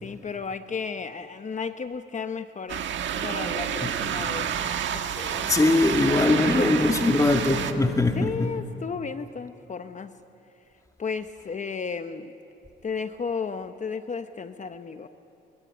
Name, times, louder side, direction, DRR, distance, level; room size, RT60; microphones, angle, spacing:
voice 1, 0.0-2.8 3.2-4.5 4.9-5.5 6.4-6.9 8.1-10.1 11.0-12.3 12.8-15.1, left 5 dB, 40° left, 9 dB, 1.0 m, -33 dB
sound 1, 2.7-7.7, right 8 dB, 70° right, 1.6 m, -29 dB
voice 2, 5.5-8.5, left 2 dB, 15° left, 4 dB, 2.1 m, -21 dB
23.0 x 22.5 x 9.9 m, 2.7 s
cardioid pair, 90°, 20 cm